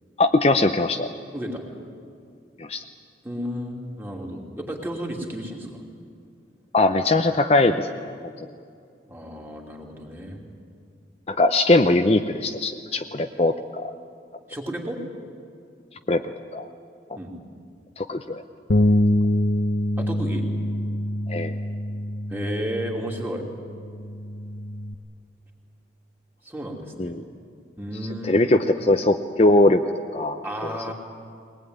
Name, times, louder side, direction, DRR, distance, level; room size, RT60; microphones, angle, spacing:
voice 1, 0.2-1.1 2.6-2.8 6.7-8.1 11.3-13.9 16.1-16.2 16.5-16.7 18.0-18.4 21.3-21.5 27.0-27.2 28.2-29.8 30.1-30.4, left 2 dB, 35° left, 6 dB, 0.7 m, -20 dB
voice 2, 1.3-1.7 3.2-5.8 9.1-10.4 14.5-15.0 17.2-17.3 20.0-20.5 22.3-23.5 26.4-27.2 27.8-28.7 30.4-30.9, equal, 10° right, 0 dB, 2.8 m, -32 dB
Bass guitar, 18.7-24.9, left 1 dB, 65° left, 0.8 m, -25 dB
22.0 x 19.5 x 9.5 m, 2.4 s
head